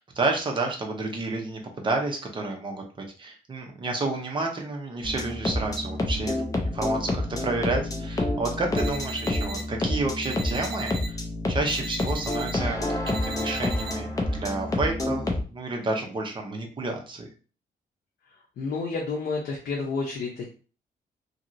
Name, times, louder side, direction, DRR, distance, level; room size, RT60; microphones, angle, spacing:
voice 1, 0.0-6.4 6.7-11.2 11.5-15.2 15.5-17.3, right 2 dB, 30° right, 2 dB, 0.7 m, -30 dB
sound 1, 5.0-15.4, left 1 dB, 20° left, 0.5 m, -28 dB
sound 2, 8.8-9.6 10.2-11.1 11.7-12.5 13.1-13.9, right 3 dB, 70° right, 0.6 m, -38 dB
voice 2, 18.6-20.5, left 4 dB, 75° left, -2 dB, 0.7 m, -30 dB
2.9 x 2.8 x 2.6 m, 0.38 s
wide cardioid pair, 145°, 16 cm